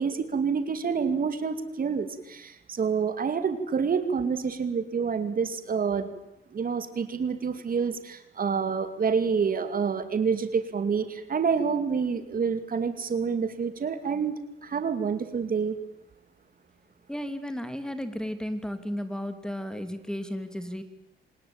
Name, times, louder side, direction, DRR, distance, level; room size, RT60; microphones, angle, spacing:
voice 1, 0.0-6.1 6.5-14.3 14.6-15.8, right 6 dB, 45° right, 10 dB, 2.5 m, -28 dB
voice 2, 17.1-20.8, equal, 5° left, 10 dB, 2.8 m, -34 dB
28.0 x 19.5 x 8.9 m, 0.82 s
cardioid pair, 90°, 20 cm